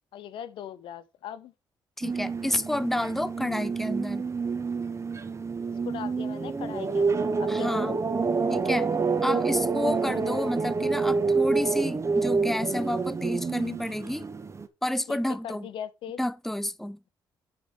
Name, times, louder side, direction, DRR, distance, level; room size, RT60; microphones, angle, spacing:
voice 1, 0.1-1.5 5.8-8.0 15.1-15.2 15.4-16.2, left 9 dB, 75° left, 1.0 m, -39 dB
voice 2, 2.0-4.3 7.5-8.0 8.5-8.9 9.2-14.3 14.8-15.7 16.2-17.0, left 1 dB, 5° left, 0.7 m, -30 dB
sound 1, 2.0-14.7, right 4 dB, 35° right, 1.4 m, -28 dB
11.0 x 4.7 x 4.7 m
cardioid pair, 80°, 9 cm